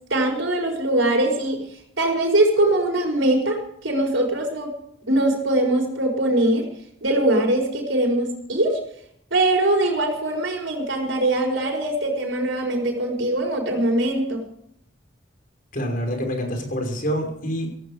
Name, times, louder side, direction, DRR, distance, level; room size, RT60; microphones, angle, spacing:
voice 1, 0.1-1.6 2.0-4.7 5.1-6.7 7.0-8.8 9.3-14.4, right 1 dB, 85° right, 0 dB, 5.0 m, -22 dB
voice 2, 15.7-17.7, equal, 50° left, 3 dB, 5.6 m, -26 dB
16.5 x 16.0 x 5.1 m, 0.69 s
head